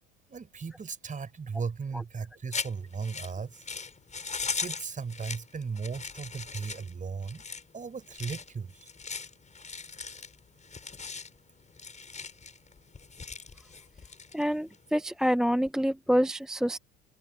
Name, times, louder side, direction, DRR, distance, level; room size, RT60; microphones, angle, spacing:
voice 1, 0.3-3.6 4.6-7.4 7.7-8.9, right 5 dB, 25° right, 4.4 m, -36 dB
sound 1, 2.5-14.9, left 5 dB, 25° left, 7.3 m, -40 dB
voice 2, 14.3-16.8, equal, ahead, 0.6 m, -27 dB
open air
hypercardioid pair, 85°, 30 cm